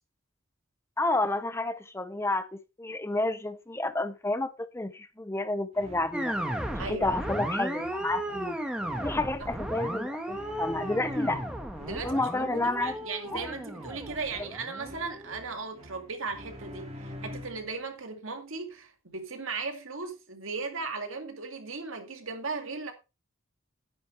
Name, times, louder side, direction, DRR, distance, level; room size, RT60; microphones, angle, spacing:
voice 1, 1.0-6.4 6.8-8.6 9.0-11.4 12.0-12.9 13.3-13.4, left 2 dB, 10° left, 0.6 m, -30 dB
sound 1, 5.7-17.8, left 1 dB, 30° right, 2.2 m, -46 dB
sound 2, 6.1-15.4, right 1 dB, 5° right, 1.6 m, -35 dB
voice 2, 6.8-7.2 9.4-9.5 11.8-22.9, right 4 dB, 75° right, 2.3 m, -37 dB
9.8 x 9.5 x 3.3 m
head